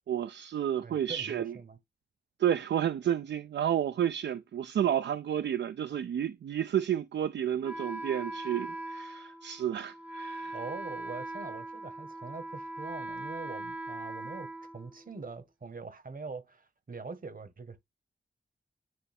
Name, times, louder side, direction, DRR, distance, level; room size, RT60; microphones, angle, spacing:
voice 1, 0.1-1.5 2.4-10.6, right 10 dB, 75° right, 0.4 m, -31 dB
voice 2, 0.8-1.8 10.5-17.8, right 4 dB, 50° right, 1.3 m, -43 dB
Wind instrument woodwind instrument, 7.6-15.4, right 2 dB, 10° right, 0.6 m, -40 dB
9.1 x 3.3 x 3.5 m
cardioid pair, 50°, 18 cm